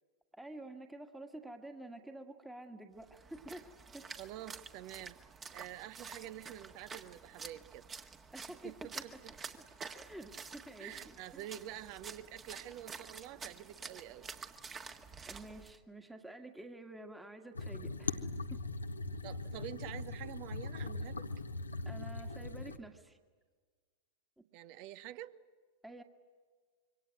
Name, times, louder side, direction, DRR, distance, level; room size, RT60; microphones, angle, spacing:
voice 1, 0.3-4.0 8.3-9.2 9.9-11.5 15.3-18.6 21.9-23.2 24.4-24.5 25.8-26.0, right 1 dB, 5° right, 5 dB, 1.8 m, -49 dB
Splash splatter, 3.0-15.8, right 5 dB, 20° right, 1.8 m, -49 dB
voice 2, 4.2-5.2 5.5-7.9 8.6-9.3 10.8-14.3 19.2-21.3 24.5-25.4, right 13 dB, 45° right, 16 dB, 1.1 m, -47 dB
sound 1, 17.5-22.8, left 3 dB, 80° left, 1.2 m, -40 dB
26.5 x 24.5 x 9.2 m, 1.5 s
figure-of-eight pair, 90°, 0 cm